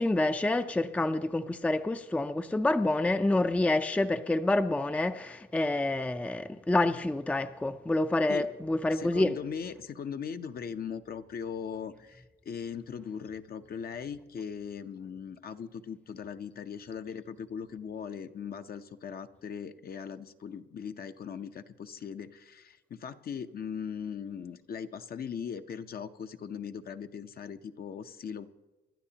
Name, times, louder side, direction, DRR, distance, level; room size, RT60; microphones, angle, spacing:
voice 1, 0.0-9.3, left 2 dB, 5° left, 0.5 m, -28 dB
voice 2, 8.9-28.5, left 7 dB, 50° left, 0.8 m, -39 dB
27.0 x 12.0 x 2.9 m
cardioid pair, 90°, 20 cm